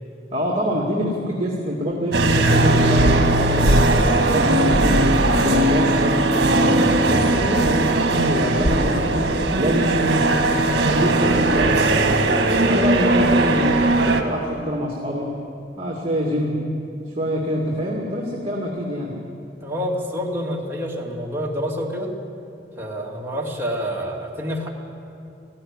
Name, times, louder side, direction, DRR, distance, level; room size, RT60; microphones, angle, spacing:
voice 1, 0.3-3.8 4.1-9.2 9.6-12.3 12.7-13.9 14.2-15.3 15.8-16.6 17.2-19.1, equal, 30° right, -3 dB, 2.4 m, -25 dB
sound 1, 2.1-14.2, right 2 dB, 65° right, 1.8 m, -18 dB
voice 2, 19.6-22.1 22.8-24.7, equal, 15° right, -2 dB, 2.7 m, -27 dB
18.5 x 15.0 x 9.9 m, 2.6 s
head